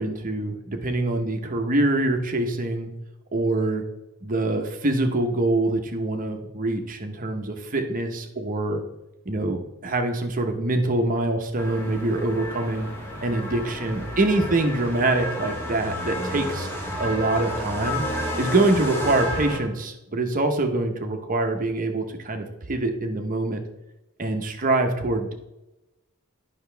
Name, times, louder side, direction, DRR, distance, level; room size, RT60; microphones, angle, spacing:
voice 1, 0.0-2.9 3.3-3.8 4.2-8.8 9.3-12.9 13.2-16.7 17.0-18.0 18.4-23.6 24.2-25.3, right 2 dB, 40° right, 5 dB, 0.9 m, -24 dB
sound 1, 11.6-19.6, left 1 dB, 10° left, 1.5 m, -31 dB
9.6 x 5.8 x 3.4 m, 0.98 s
head